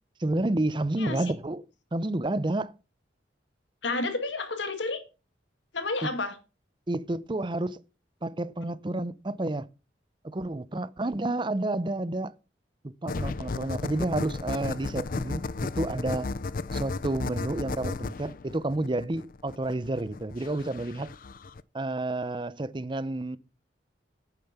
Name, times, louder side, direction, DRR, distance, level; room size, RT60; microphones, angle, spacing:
voice 1, 0.2-1.6 1.9-2.7 6.0-6.1 6.9-7.8 8.2-9.7 10.2-12.3 12.8-16.3 16.7-21.1 21.7-23.4, right 2 dB, 25° right, 0.6 m, -30 dB
voice 2, 3.8-5.0 5.7-6.4, left 3 dB, 90° left, 2.1 m, -30 dB
sound 1, 13.1-21.6, left 3 dB, 50° left, 0.5 m, -34 dB
9.0 x 8.8 x 5.9 m
head